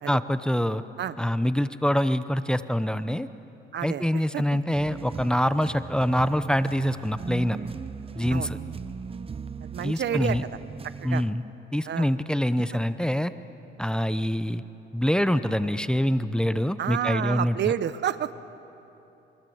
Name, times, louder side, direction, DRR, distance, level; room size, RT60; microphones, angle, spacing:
voice 1, 0.1-0.8 1.2-3.3 3.8-7.6 8.1-8.6 9.8-10.4 11.0-11.4 11.7-13.3 13.8-14.6 14.9-17.6, equal, 5° left, 12 dB, 0.8 m, -25 dB
voice 2, 3.7-4.0 4.3-4.6 8.3-8.5 9.6-10.4 11.0-11.3 11.9-12.1 16.8-18.4, right 10 dB, 60° right, 14 dB, 0.9 m, -29 dB
sound 1, 4.7-11.3, right 5 dB, 30° right, 0.7 m, -38 dB
27.5 x 23.0 x 7.9 m, 2.9 s
cardioid pair, 90°, 20 cm